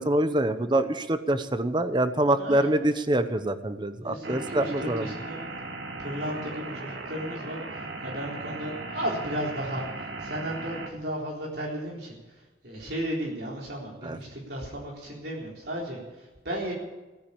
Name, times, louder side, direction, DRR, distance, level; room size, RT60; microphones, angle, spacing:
voice 1, 0.0-5.1 14.0-14.2, right 1 dB, 25° right, 11 dB, 0.9 m, -25 dB
voice 2, 2.2-2.7 4.0-5.4 6.0-16.7, equal, 65° right, -3 dB, 4.0 m, -34 dB
sound 1, 4.2-10.9, right 2 dB, 85° right, 2.2 m, -37 dB
17.0 x 9.7 x 8.6 m, 1.2 s
head